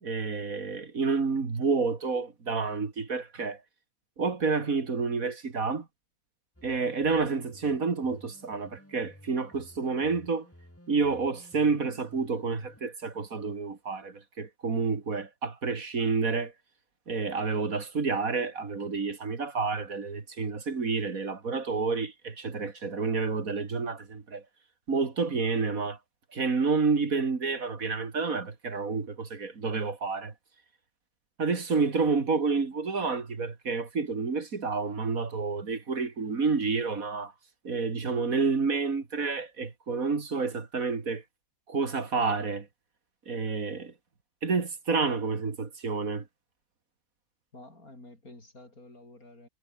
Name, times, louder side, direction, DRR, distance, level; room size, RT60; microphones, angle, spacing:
voice 1, 0.0-3.6 4.2-5.9 6.6-10.5 10.9-16.5 17.1-24.4 24.9-26.0 26.3-30.3 31.4-37.3 37.6-41.2 41.7-42.7 43.3-43.9 44.4-46.3, right 4 dB, 65° right, 2.8 m, -29 dB
sound 1, 6.6-12.8, left 1 dB, 10° left, 3.9 m, -54 dB
voice 2, 47.5-49.5, left 2 dB, 70° left, 7.6 m, -50 dB
omnidirectional pair, 1.6 m